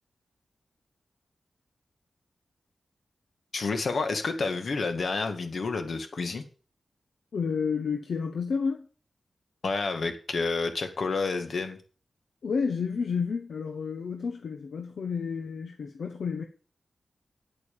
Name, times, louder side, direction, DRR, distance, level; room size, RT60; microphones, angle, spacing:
voice 1, 3.5-6.4 9.6-11.8, left 4 dB, 65° left, 2.1 m, -29 dB
voice 2, 7.3-8.9 12.4-16.4, left 5 dB, 80° left, 1.2 m, -30 dB
9.3 x 8.6 x 7.0 m
wide cardioid pair, 100°, 0 cm